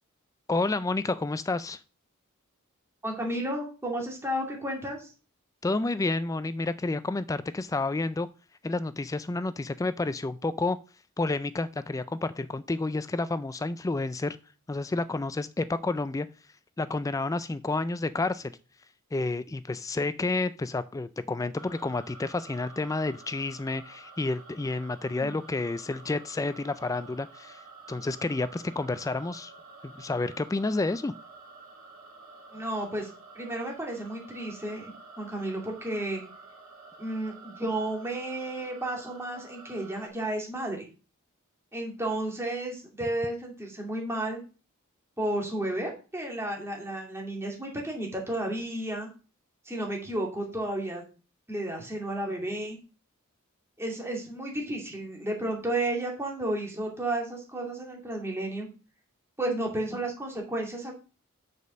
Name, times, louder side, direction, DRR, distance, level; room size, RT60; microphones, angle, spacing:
voice 1, 0.5-1.8 5.6-8.3 8.6-10.8 11.2-14.4 14.7-16.3 16.8-18.5 19.1-27.6 27.9-29.5 29.8-31.1, left 3 dB, 15° left, 14 dB, 0.3 m, -30 dB
voice 2, 3.0-5.1 25.1-25.4 32.5-33.1 33.3-34.9 35.2-36.2 37.0-40.9 41.7-44.4 45.2-49.1 49.7-51.0 51.5-52.8 53.8-58.7 59.4-60.9, right 1 dB, 10° right, 0 dB, 2.4 m, -32 dB
sound 1, 21.5-40.1, right 3 dB, 80° right, 2.8 m, -50 dB
6.7 x 5.1 x 6.3 m, 0.34 s
head